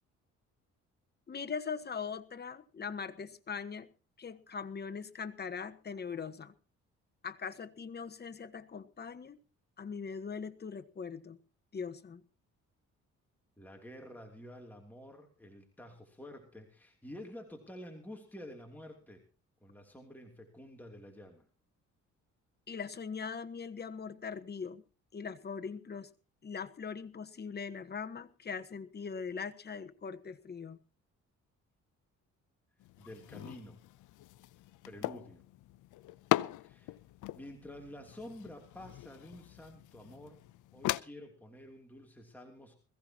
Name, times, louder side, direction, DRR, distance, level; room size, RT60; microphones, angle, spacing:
voice 1, 1.3-3.9 4.2-6.5 7.2-9.4 9.8-11.4 11.7-12.2 22.7-24.8 25.1-26.1 26.4-30.8, left 6 dB, 35° left, 9 dB, 1.3 m, -41 dB
voice 2, 13.6-19.2 19.6-21.5 33.0-33.8 34.8-35.4 36.5-37.0 37.3-40.4 40.7-42.7, left 1 dB, 5° left, 2 dB, 3.0 m, -49 dB
sound 1, 32.8-41.0, left 16 dB, 80° left, 0.6 m, -39 dB
21.0 x 15.5 x 2.9 m, 0.34 s
cardioid pair, 90°, 30 cm